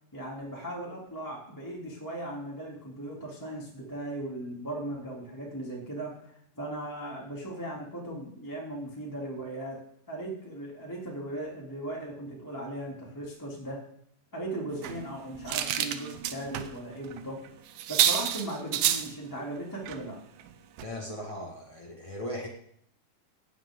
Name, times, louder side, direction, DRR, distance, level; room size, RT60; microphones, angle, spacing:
voice 1, 0.1-9.8 10.1-13.8 14.3-17.4 17.9-20.2, right 1 dB, 5° left, -4 dB, 2.4 m, -38 dB
sound 1, 14.8-16.7 17.0-17.2 17.5-17.6 17.8-19.1 19.8-20.0 20.4-20.5 20.8-20.9, right 10 dB, 85° right, 2.5 m, -29 dB
voice 2, 20.8-22.5, equal, 40° left, -1 dB, 0.4 m, -38 dB
17.5 x 9.7 x 3.8 m, 0.68 s
omnidirectional pair, 3.8 m